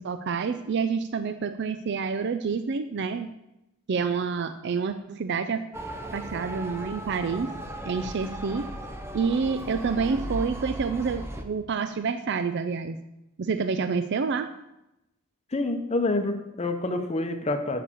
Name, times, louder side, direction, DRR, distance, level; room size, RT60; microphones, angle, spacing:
voice 1, 0.0-3.3 3.9-5.7 6.1-7.5 7.9-8.7 9.1-13.0 13.4-14.5, right 5 dB, 55° right, 10 dB, 0.4 m, -28 dB
Motor vehicle (road) / Siren, 5.7-11.4, right 1 dB, 10° right, 0.6 m, -37 dB
voice 2, 15.5-17.8, left 2 dB, 30° left, 6 dB, 0.8 m, -27 dB
8.1 x 4.9 x 7.2 m, 0.88 s
head